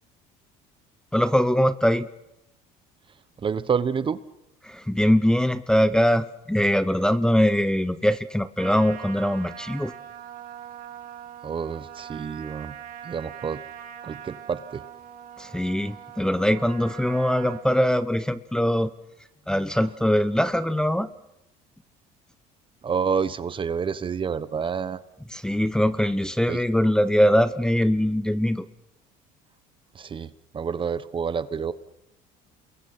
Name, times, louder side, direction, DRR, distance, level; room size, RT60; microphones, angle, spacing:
voice 1, 1.1-2.1 4.6-9.9 15.4-18.9 19.5-21.1 25.3-28.7, equal, 5° left, 14 dB, 0.9 m, -22 dB
voice 2, 3.4-4.2 11.4-12.7 13.0-13.6 14.0-14.8 22.8-25.0 26.5-26.6 29.9-31.7, right 6 dB, 30° right, 15 dB, 1.1 m, -28 dB
Trumpet, 8.6-17.7, right 10 dB, 55° right, 3.0 m, -42 dB
29.5 x 22.0 x 5.8 m, 0.88 s
supercardioid pair, 100°, 16 cm